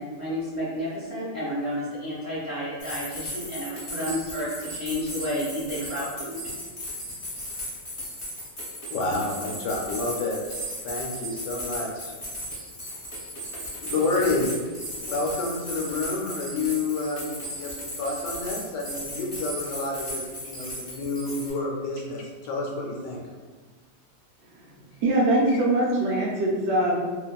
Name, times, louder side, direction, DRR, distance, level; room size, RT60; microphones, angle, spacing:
voice 1, 0.0-6.4, equal, 40° right, -11 dB, 0.6 m, -31 dB
sound 1, 2.8-21.5, equal, 30° left, 0.6 m, -36 dB
voice 2, 8.9-12.1 13.8-14.6 15.0-23.2 25.5-25.6, left 3 dB, 80° left, -1 dB, 1.1 m, -29 dB
voice 3, 25.0-27.0, right 1 dB, 75° right, -3 dB, 1.1 m, -22 dB
2.8 x 2.5 x 2.2 m, 1.4 s
omnidirectional pair, 1.9 m